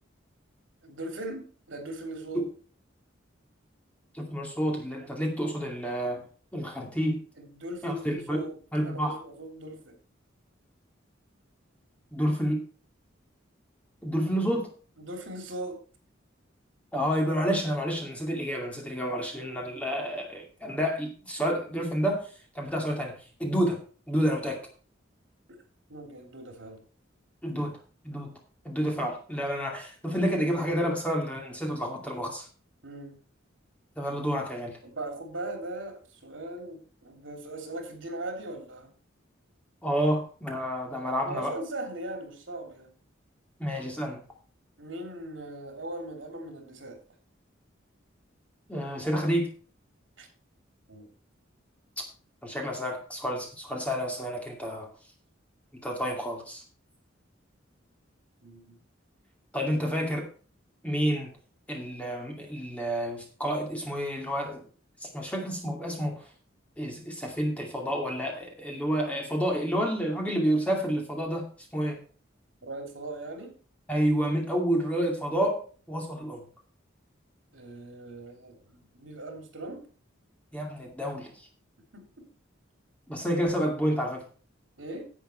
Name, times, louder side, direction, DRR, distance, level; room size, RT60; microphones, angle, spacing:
voice 1, 0.8-2.5 7.4-10.0 15.0-15.8 25.5-25.6 25.9-26.8 27.5-27.7 32.8-33.2 34.8-38.9 41.2-42.9 44.8-47.0 50.2-50.3 50.9-51.1 58.4-58.8 72.6-73.6 77.5-79.9 81.9-82.3 84.8-85.0, right 1 dB, 75° right, 4 dB, 3.0 m, -39 dB
voice 2, 4.2-6.2 6.5-7.2 7.8-8.4 8.7-9.2 12.1-12.6 14.0-14.7 16.9-22.2 22.5-23.8 24.1-24.6 27.4-27.8 28.0-28.3 28.6-32.4 34.0-34.8 39.8-41.5 43.6-44.2 48.7-49.5 52.4-54.9 55.8-56.6 59.5-60.3 60.8-61.3 61.7-64.7 65.0-66.2 66.8-71.5 71.7-72.0 73.9-75.6 75.9-76.4 80.5-81.3 83.1-84.2, equal, 5° left, 0 dB, 2.4 m, -29 dB
11.0 x 8.0 x 4.5 m, 0.39 s
head